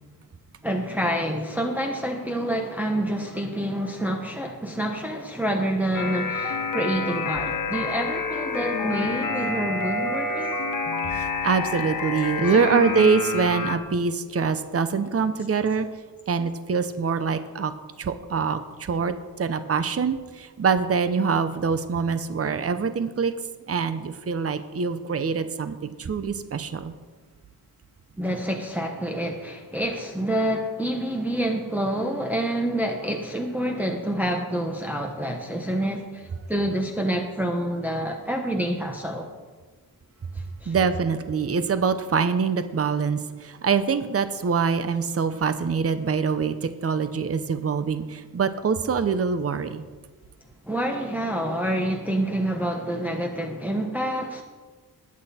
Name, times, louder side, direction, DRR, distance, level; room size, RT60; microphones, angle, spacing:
voice 1, 0.6-10.6 12.4-12.8 28.2-39.3 40.3-40.7 50.6-54.4, right 1 dB, 5° right, 1 dB, 1.0 m, -27 dB
sound 1, 5.9-13.8, left 4 dB, 55° left, 1.3 m, -28 dB
voice 2, 11.1-15.9 16.3-17.7 18.0-23.3 23.7-26.9 40.7-49.8, right 5 dB, 40° right, 11 dB, 0.7 m, -24 dB
20.5 x 8.6 x 4.3 m, 1.4 s
wide cardioid pair, 125°, 38 cm